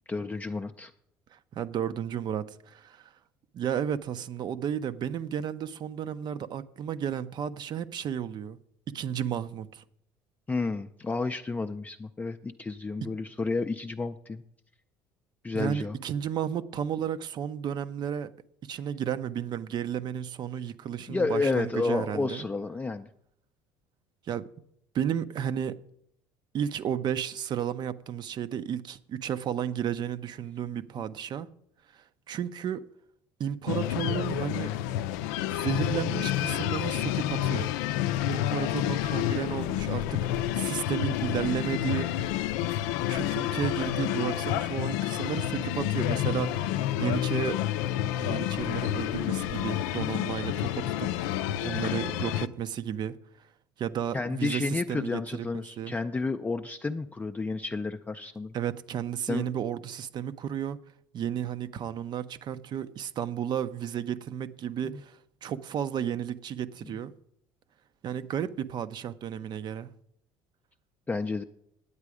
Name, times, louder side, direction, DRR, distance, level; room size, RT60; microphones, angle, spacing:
voice 1, 0.1-0.9 10.5-14.4 15.4-16.0 21.1-23.1 54.1-58.5 59.3-59.5 64.8-65.0 66.8-66.9 71.1-71.4, left 3 dB, 15° left, 0.4 m, -31 dB
voice 2, 1.3-3.1 3.5-8.6 8.9-9.8 13.0-13.1 15.5-18.3 18.6-22.5 24.3-24.5 24.9-25.8 26.5-31.5 31.9-32.8 33.4-34.7 35.6-37.7 38.3-40.2 40.5-42.1 43.1-47.6 48.2-51.1 51.6-53.2 53.8-55.5 55.8-55.9 58.5-60.8 61.1-67.1 68.0-69.9, right 9 dB, 50° right, 0.6 m, -33 dB
sound 1, 33.7-52.5, left 12 dB, 85° left, 0.4 m, -29 dB
9.7 x 8.2 x 4.9 m
supercardioid pair, 85°, 10 cm